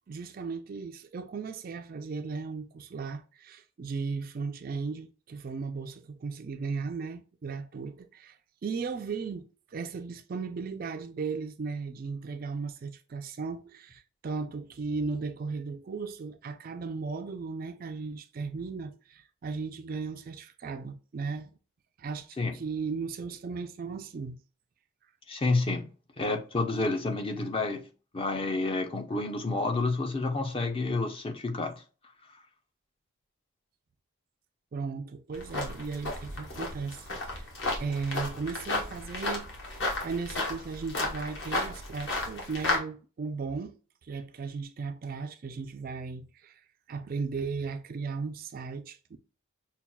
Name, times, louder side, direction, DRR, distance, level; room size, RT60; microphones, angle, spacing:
voice 1, 0.1-8.4 8.6-21.6 22.0-24.4 34.7-37.5 37.8-39.7 40.0-49.2, right 4 dB, 40° right, 0.3 m, -36 dB
voice 2, 25.3-25.9 26.2-27.9 28.1-31.8, left 3 dB, 25° left, 0.5 m, -29 dB
sound 1, 35.3-42.8, left 2 dB, 55° left, 1.2 m, -33 dB
5.6 x 2.3 x 2.2 m
head